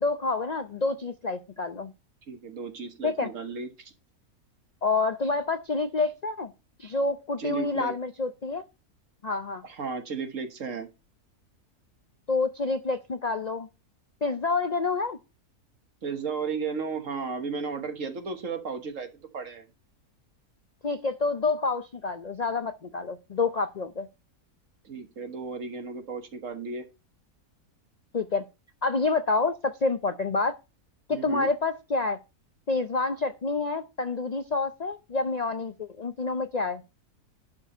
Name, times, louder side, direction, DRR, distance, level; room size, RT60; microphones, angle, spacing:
voice 1, 0.0-1.9 3.0-3.3 4.8-6.5 6.8-8.6 9.2-9.6 12.3-13.7 14.2-15.2 20.8-24.1 28.1-28.4 28.8-30.6 31.1-32.2 32.7-36.8, left 3 dB, 85° left, 0.3 m, -28 dB
voice 2, 2.3-3.9 7.4-7.9 9.6-10.9 16.0-19.7 24.8-26.8 31.1-31.5, right 5 dB, 55° right, 1.7 m, -34 dB
11.5 x 4.8 x 5.5 m
omnidirectional pair, 1.6 m